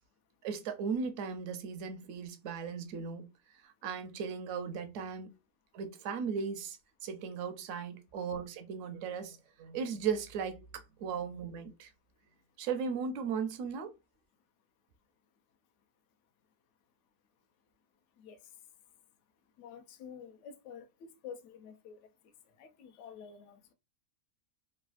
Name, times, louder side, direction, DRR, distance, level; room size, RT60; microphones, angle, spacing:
voice 1, 0.4-3.3 3.6-5.3 5.7-11.9 12.6-13.9, right 6 dB, 70° right, 0.9 m, -37 dB
voice 2, 19.6-22.0 22.6-23.6, left 7 dB, 65° left, 0.8 m, -49 dB
3.2 x 2.3 x 2.3 m
omnidirectional pair, 1.5 m